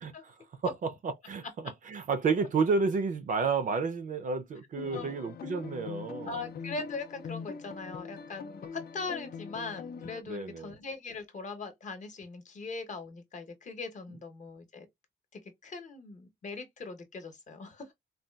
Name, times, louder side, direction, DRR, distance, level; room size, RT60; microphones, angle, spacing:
voice 1, 0.0-0.3 0.6-6.4 10.3-10.7, right 4 dB, 45° right, 0.4 m, -31 dB
sound 1, 4.8-10.2, left 6 dB, 55° left, 0.4 m, -42 dB
voice 2, 6.3-14.9 15.3-17.9, left 4 dB, 40° left, 0.8 m, -40 dB
3.8 x 2.3 x 2.2 m
wide cardioid pair, 170°, 19 cm